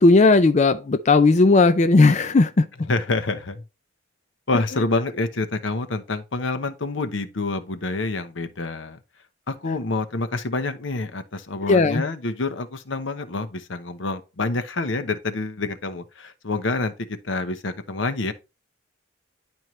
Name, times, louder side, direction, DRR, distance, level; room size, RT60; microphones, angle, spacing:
voice 1, 0.0-2.6 11.7-12.0, left 3 dB, 35° left, 0.4 m, -16 dB
voice 2, 2.9-3.6 4.5-9.0 9.5-16.9 17.2-18.3, left 3 dB, 80° left, 1.0 m, -27 dB
10.5 x 4.5 x 3.2 m
head